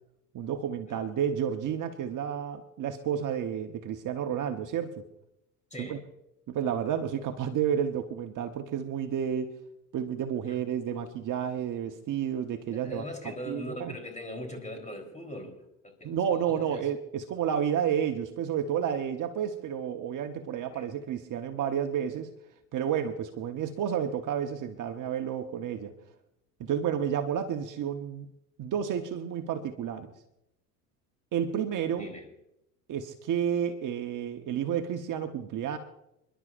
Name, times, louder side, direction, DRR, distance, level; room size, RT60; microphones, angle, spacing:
voice 1, 0.3-5.1 5.8-6.0 6.5-9.6 9.9-13.0 13.5-13.9 16.0-22.3 22.7-26.0 26.6-28.3 28.6-30.1 31.3-32.1 32.9-35.8, right 8 dB, 40° right, 5 dB, 1.2 m, -31 dB
voice 2, 5.7-6.0 10.4-10.5 12.7-16.9 20.7-20.9 32.0-32.2, left 1 dB, 15° left, 4 dB, 4.0 m, -41 dB
29.5 x 11.5 x 2.6 m, 0.84 s
hypercardioid pair, 80°, 46 cm